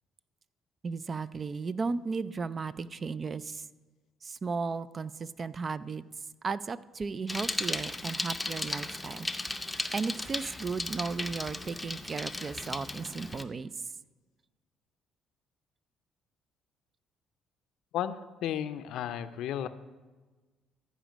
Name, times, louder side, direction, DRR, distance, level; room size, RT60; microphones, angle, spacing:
voice 1, 0.8-3.6 4.2-6.0 6.4-9.3 9.9-13.7, right 4 dB, 35° right, 16 dB, 0.4 m, -35 dB
Bicycle, 7.3-13.4, left 2 dB, 10° left, 0.6 m, -36 dB
voice 2, 17.9-19.7, left 10 dB, 75° left, 12 dB, 0.5 m, -33 dB
14.0 x 5.1 x 5.1 m, 1.3 s
supercardioid pair, 80°, 0 cm